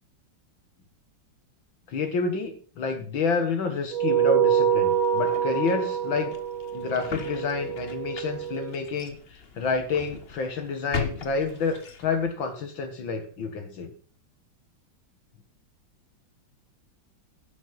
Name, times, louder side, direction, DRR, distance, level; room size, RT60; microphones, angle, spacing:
voice 1, 1.9-6.4 6.7-13.9, left 4 dB, 70° left, 7 dB, 2.2 m, -29 dB
sound 1, 3.9-8.7, right 8 dB, 85° right, 2.6 m, -25 dB
sound 2, 4.8-12.3, left 5 dB, 35° left, 1.2 m, -39 dB
12.5 x 6.9 x 5.4 m, 0.42 s
omnidirectional pair, 2.2 m